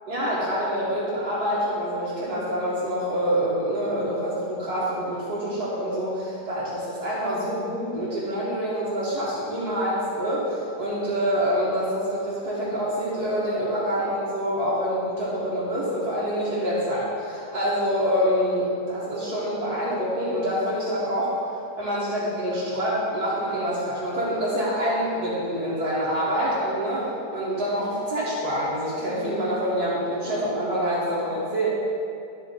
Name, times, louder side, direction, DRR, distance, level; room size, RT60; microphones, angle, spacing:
voice 1, 0.1-21.3 21.8-31.7, equal, 75° right, -9 dB, 2.1 m, -26 dB
13.0 x 5.0 x 3.8 m, 2.5 s
omnidirectional pair, 1.7 m